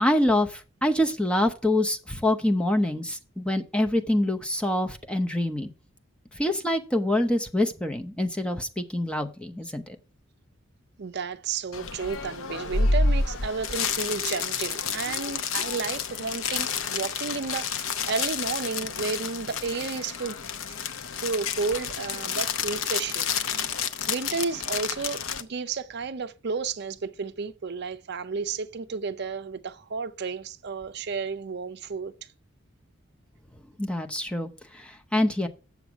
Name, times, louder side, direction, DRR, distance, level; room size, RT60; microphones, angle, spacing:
voice 1, 0.0-5.7 6.4-10.0 33.8-35.5, left 1 dB, 5° left, 0.7 m, -26 dB
voice 2, 11.0-20.4 21.2-23.7 24.1-32.1, right 4 dB, 55° right, 0.5 m, -32 dB
sound 1, 11.7-25.4, left 5 dB, 85° left, 0.8 m, -29 dB
7.9 x 7.1 x 4.8 m
head